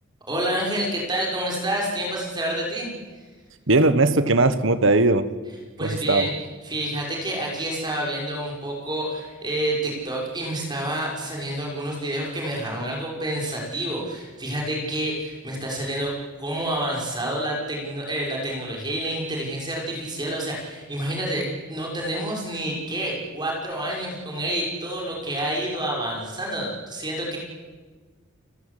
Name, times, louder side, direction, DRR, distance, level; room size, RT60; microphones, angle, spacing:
voice 1, 0.3-2.9 5.8-6.3 6.6-16.1 16.4-27.4, right 1 dB, 20° right, -2 dB, 5.8 m, -28 dB
voice 2, 3.7-5.3 5.8-6.3, right 2 dB, 65° right, 12 dB, 1.3 m, -19 dB
30.0 x 16.0 x 8.4 m, 1.4 s
head